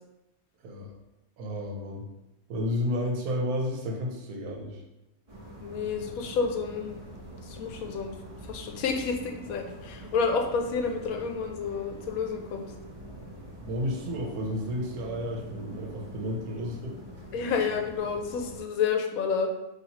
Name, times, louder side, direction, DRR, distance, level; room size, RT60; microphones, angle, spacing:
voice 1, 0.6-0.9 1.4-2.0 2.5-4.8 13.6-17.0, left 1 dB, 80° right, 0 dB, 1.2 m, -32 dB
sound 1, 5.3-18.6, right 1 dB, 30° right, 0.8 m, -44 dB
voice 2, 5.6-7.0 7.4-8.1 8.4-12.7 17.3-19.5, left 5 dB, 75° left, 4 dB, 1.0 m, -30 dB
4.1 x 2.8 x 2.8 m, 0.97 s
omnidirectional pair, 1.5 m